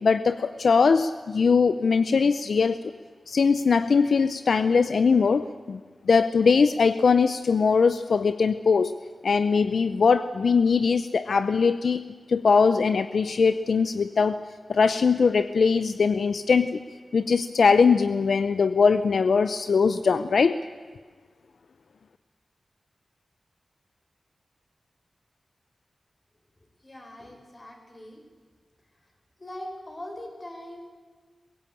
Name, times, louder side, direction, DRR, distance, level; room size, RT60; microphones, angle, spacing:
voice 1, 0.0-2.8 3.3-5.8 6.1-8.9 9.2-12.0 12.3-14.4 14.7-16.8 17.1-20.6, left 5 dB, 80° left, 12 dB, 0.6 m, -21 dB
voice 2, 26.8-28.2 29.4-30.8, left 1 dB, 35° left, 3 dB, 4.8 m, -41 dB
22.0 x 16.5 x 8.8 m, 1.4 s
cardioid pair, 55°, 0 cm